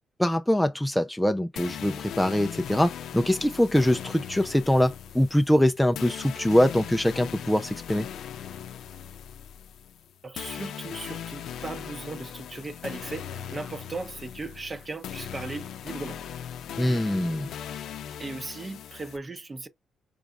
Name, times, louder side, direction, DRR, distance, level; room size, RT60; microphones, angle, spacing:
voice 1, 0.2-8.1 16.8-17.5, equal, 5° left, 0.4 m, -23 dB
sound 1, 1.6-19.2, left 9 dB, 75° left, 0.6 m, -39 dB
voice 2, 10.2-16.2 18.2-19.7, right 3 dB, 25° right, 0.9 m, -37 dB
5.0 x 3.4 x 2.4 m
cardioid pair, 90°, 0 cm